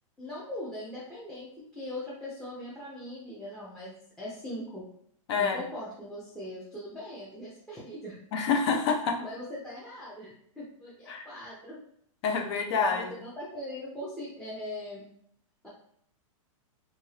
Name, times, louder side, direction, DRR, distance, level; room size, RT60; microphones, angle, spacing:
voice 1, 0.2-4.8 5.4-8.2 9.2-11.8 12.7-15.0, left 1 dB, 5° left, -7 dB, 0.6 m, -40 dB
voice 2, 5.3-5.6 8.3-9.2 11.1-11.3 12.2-13.2, left 5 dB, 55° left, 4 dB, 0.6 m, -27 dB
2.7 x 2.6 x 3.2 m, 0.68 s
hypercardioid pair, 145°, 17 cm